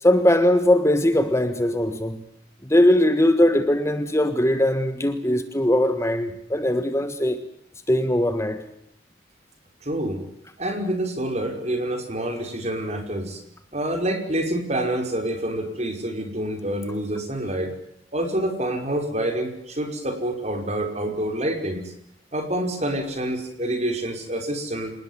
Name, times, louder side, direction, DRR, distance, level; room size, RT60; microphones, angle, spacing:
voice 1, 0.0-2.2 2.6-7.4 7.9-8.6, left 1 dB, 15° left, 1.4 m, -20 dB
voice 2, 9.8-10.2 10.6-13.4 13.7-17.7 18.1-21.9 22.3-24.9, right 1 dB, 35° right, 5.4 m, -27 dB
27.5 x 19.5 x 7.4 m
head